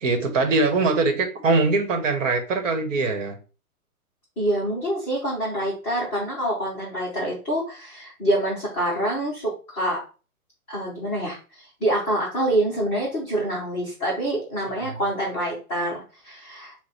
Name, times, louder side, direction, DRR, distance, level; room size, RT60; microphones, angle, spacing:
voice 1, 0.0-3.4 14.8-15.0, right 3 dB, 60° right, 6 dB, 1.1 m, -22 dB
voice 2, 4.4-10.0 10.7-16.7, right 1 dB, 5° left, -12 dB, 0.4 m, -26 dB
6.2 x 2.1 x 2.9 m, 0.35 s
hypercardioid pair, 140°, 44 cm